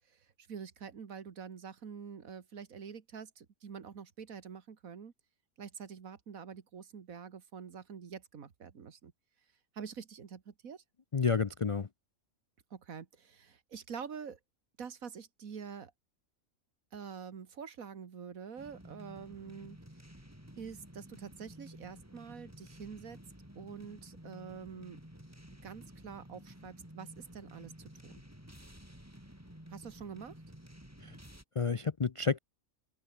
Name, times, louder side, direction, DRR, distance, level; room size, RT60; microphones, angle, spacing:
voice 1, 0.1-5.1 5.6-9.1 9.7-10.8 12.7-14.4 14.8-15.9 16.9-19.8 20.6-23.2 23.6-25.0 25.6-28.2 29.7-30.3, right 6 dB, 75° right, 2.0 m, -46 dB
voice 2, 11.1-11.9 31.0-31.2 31.6-32.4, left 5 dB, 50° left, 0.3 m, -30 dB
sound 1, 18.6-31.4, equal, 10° right, 5.7 m, -53 dB
omnidirectional pair, 1.5 m